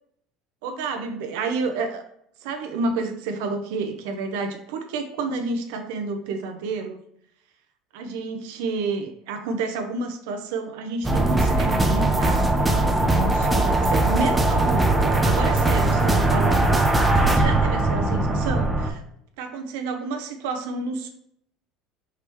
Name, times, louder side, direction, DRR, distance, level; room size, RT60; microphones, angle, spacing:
voice 1, 0.6-2.0 2.4-7.0 7.9-16.8 17.2-19.0 19.4-21.1, right 3 dB, 80° right, 5 dB, 0.6 m, -30 dB
sound 1, 11.0-18.9, right 2 dB, 10° right, 0.5 m, -20 dB
4.6 x 3.5 x 3.0 m, 0.72 s
cardioid pair, 145°, 0 cm